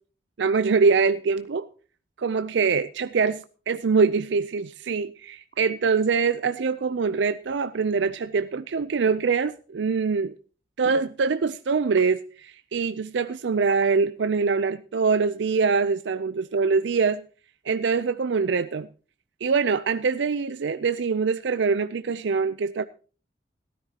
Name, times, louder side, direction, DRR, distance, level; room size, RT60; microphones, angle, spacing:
voice 1, 0.4-1.7 2.2-10.3 10.8-17.2 17.7-18.9 19.4-22.8, right 5 dB, 90° right, 0.5 m, -24 dB
18.0 x 13.0 x 2.9 m
head